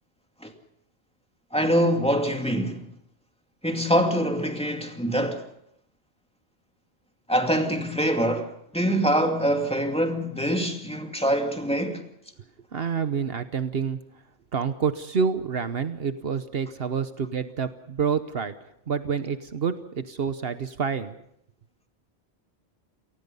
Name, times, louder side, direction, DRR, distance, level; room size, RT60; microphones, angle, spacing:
voice 1, 1.5-2.8 3.6-5.5 7.3-12.1, equal, 5° left, 2.4 m, -24 dB
voice 2, 12.7-14.0 14.5-18.5 18.9-21.2, right 6 dB, 65° right, 1.2 m, -28 dB
28.5 x 19.0 x 5.5 m
omnidirectional pair, 1.1 m